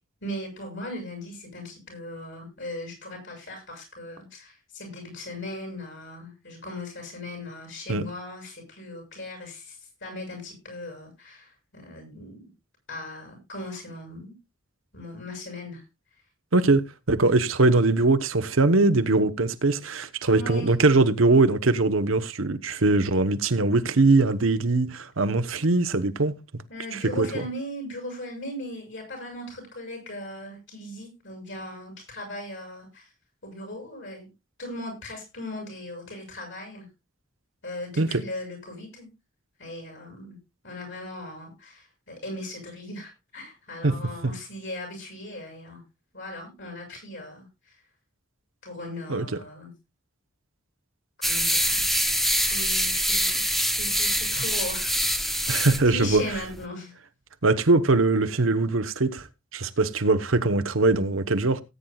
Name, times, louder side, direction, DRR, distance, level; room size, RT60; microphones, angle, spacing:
voice 1, 0.2-12.4 12.9-14.3 14.9-15.8 20.3-20.7 25.2-25.3 26.7-33.1 33.4-34.3 34.6-36.9 37.6-39.1 39.6-40.4 40.6-45.8 46.1-47.7 48.6-49.7 51.2-51.9 52.4-55.1 55.5-55.6 55.8-56.9, left 1 dB, 65° left, 7.5 m, -38 dB
voice 2, 16.5-26.6 26.9-27.4 38.0-38.2 43.8-44.0 44.2-44.3 49.1-49.3 55.5-56.2 57.4-59.3 59.5-61.6, right 3 dB, 85° right, 1.0 m, -22 dB
sound 1, 51.2-56.6, equal, ahead, 0.8 m, -25 dB
18.0 x 9.4 x 2.4 m
head